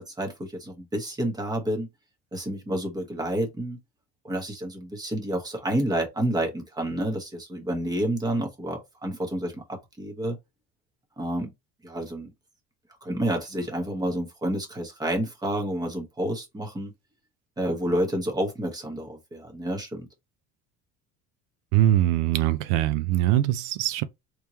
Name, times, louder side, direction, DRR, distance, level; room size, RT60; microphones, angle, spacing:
voice 1, 0.0-1.9 2.3-3.8 4.2-10.4 11.2-11.5 11.8-12.3 13.0-16.9 17.6-20.1, right 1 dB, 15° right, 1.2 m, -29 dB
voice 2, 21.7-24.0, right 13 dB, 85° right, 0.5 m, -22 dB
3.5 x 3.1 x 2.8 m
cardioid pair, 135°, 30 cm